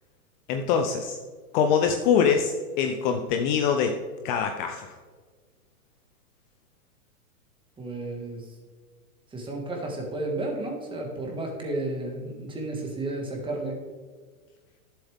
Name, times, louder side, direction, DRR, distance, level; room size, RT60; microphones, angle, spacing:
voice 1, 0.5-1.2 1.5-4.0 4.2-4.9, left 7 dB, 35° left, 5 dB, 0.7 m, -24 dB
voice 2, 7.8-8.5 9.3-13.8, right 2 dB, 10° right, 0 dB, 1.8 m, -32 dB
12.0 x 7.3 x 3.6 m, 1.5 s
hypercardioid pair, 130°, 43 cm